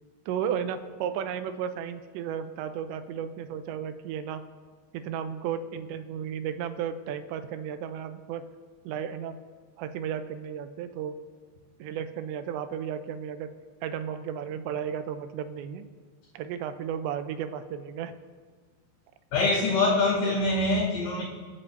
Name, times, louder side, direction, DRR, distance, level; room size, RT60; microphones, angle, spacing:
voice 1, 0.3-4.4 4.9-8.4 8.8-9.4 9.8-11.2 11.8-13.5 13.8-15.9 16.3-18.1, right 8 dB, 85° right, 10 dB, 2.9 m, -34 dB
voice 2, 19.3-21.2, left 2 dB, 75° left, -7 dB, 4.8 m, -24 dB
28.5 x 11.0 x 2.7 m, 1.5 s
omnidirectional pair, 5.1 m